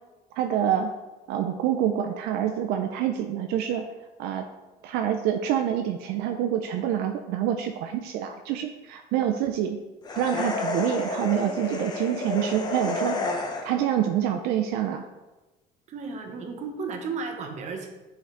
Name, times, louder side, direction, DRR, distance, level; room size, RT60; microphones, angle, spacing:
voice 1, 0.3-0.9 1.3-3.9 4.2-4.5 4.8-9.8 10.1-15.1, right 10 dB, 80° right, 5 dB, 0.4 m, -27 dB
sound 1, 10.0-13.9, left 3 dB, 25° left, 0.7 m, -30 dB
voice 2, 15.9-17.9, right 4 dB, 45° right, 3 dB, 1.0 m, -34 dB
7.7 x 3.8 x 3.3 m, 1.1 s
cardioid pair, 130°, 16 cm